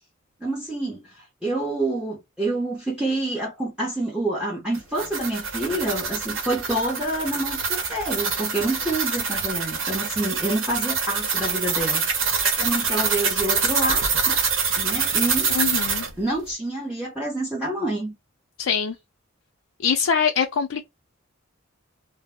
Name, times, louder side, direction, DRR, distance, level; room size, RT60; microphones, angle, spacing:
voice 1, 0.4-14.4 14.8-15.5 16.2-18.1, right 2 dB, 5° right, 0.8 m, -28 dB
sound 1, 4.7-16.1, right 5 dB, 90° right, 0.8 m, -25 dB
voice 2, 15.5-16.1 18.6-18.9 19.8-20.8, left 6 dB, 75° left, 0.4 m, -23 dB
2.2 x 2.0 x 3.4 m
head